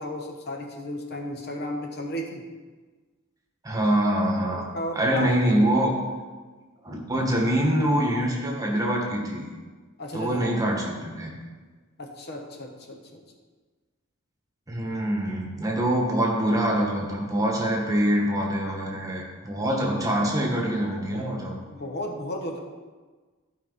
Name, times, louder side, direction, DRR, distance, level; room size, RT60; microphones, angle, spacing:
voice 1, 0.0-2.4 4.7-5.3 10.0-10.5 12.0-13.2 21.7-22.6, left 1 dB, 50° left, 2 dB, 1.0 m, -34 dB
voice 2, 3.6-4.6 4.9-5.9 6.8-9.5 10.1-11.4 14.7-21.5, right 1 dB, 15° right, -1 dB, 1.5 m, -24 dB
13.0 x 5.2 x 4.1 m, 1.4 s
head